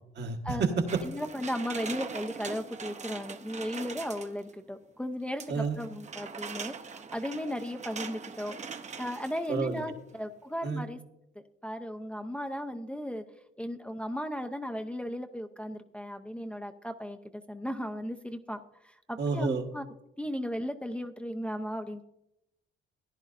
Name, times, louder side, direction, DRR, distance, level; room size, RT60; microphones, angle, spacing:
voice 1, 0.1-1.0 5.5-5.8 9.5-9.8 10.6-10.8 19.2-19.6, right 4 dB, 60° right, 4 dB, 1.4 m, -29 dB
sound 1, 0.9-4.5 5.4-9.8 10.1-10.2, right 5 dB, 35° right, 0.8 m, -42 dB
voice 2, 1.0-8.6 9.0-11.0 11.4-13.2 13.6-19.9 20.2-22.0, equal, 5° left, 5 dB, 0.6 m, -36 dB
15.0 x 10.5 x 2.6 m, 0.85 s
cardioid pair, 90°, 20 cm